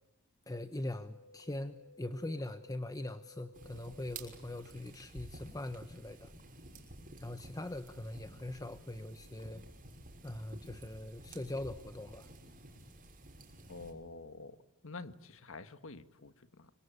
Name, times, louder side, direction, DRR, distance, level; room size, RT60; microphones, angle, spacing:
voice 1, 0.5-6.3 7.2-9.6 10.2-12.3, left 1 dB, 15° left, 10 dB, 1.0 m, -42 dB
sound 1, 1.0-4.4 5.4-5.5 6.4-6.5 7.4-7.5 8.4-8.5 9.4-9.5 10.4-10.5, left 3 dB, 40° left, 4.1 m, -59 dB
sound 2, 3.5-13.9, right 2 dB, 40° right, 6.2 m, -52 dB
voice 2, 13.7-14.6 14.8-16.7, left 3 dB, 65° left, 12 dB, 1.7 m, -48 dB
26.0 x 25.0 x 8.7 m, 0.86 s
head